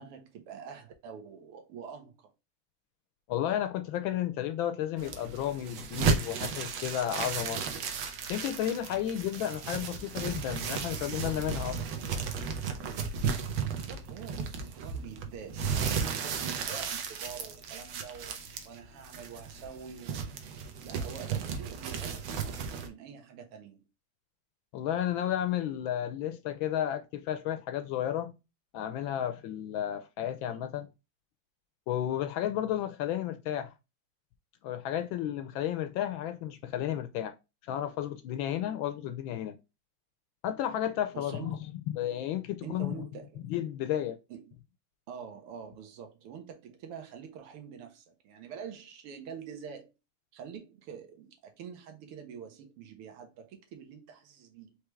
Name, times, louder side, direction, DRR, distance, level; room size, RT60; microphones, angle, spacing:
voice 1, 0.0-2.3 13.7-20.3 20.8-23.9 41.1-41.6 42.6-43.4 44.3-44.4 45.1-49.9 50.3-54.8, right 7 dB, 85° right, 1.9 m, -46 dB
voice 2, 3.3-7.6 8.3-11.8 24.7-28.3 28.7-30.9 31.9-33.7 34.6-37.3 37.7-39.6 40.4-41.6 41.9-43.0 43.4-44.2, left 11 dB, 75° left, 1.2 m, -32 dB
sound 1, 5.0-22.9, right 6 dB, 70° right, 1.6 m, -34 dB
4.7 x 3.4 x 3.1 m
omnidirectional pair, 2.4 m